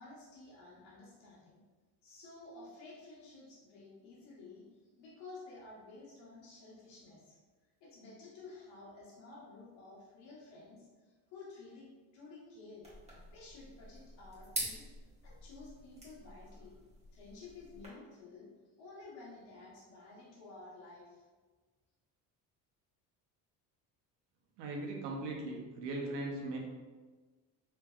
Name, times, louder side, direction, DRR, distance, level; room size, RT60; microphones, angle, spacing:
voice 1, 0.0-1.6 2.0-4.7 5.0-7.4 7.8-12.8 13.3-14.9 15.2-16.7 17.1-18.5 18.8-21.3, left 3 dB, 90° left, -6 dB, 1.3 m, -52 dB
sound 1, 12.8-17.9, right 1 dB, 15° right, 1.3 m, -46 dB
voice 2, 24.6-26.6, right 2 dB, 75° right, 0 dB, 0.9 m, -39 dB
3.3 x 3.2 x 2.4 m, 1.4 s
supercardioid pair, 90°, 42 cm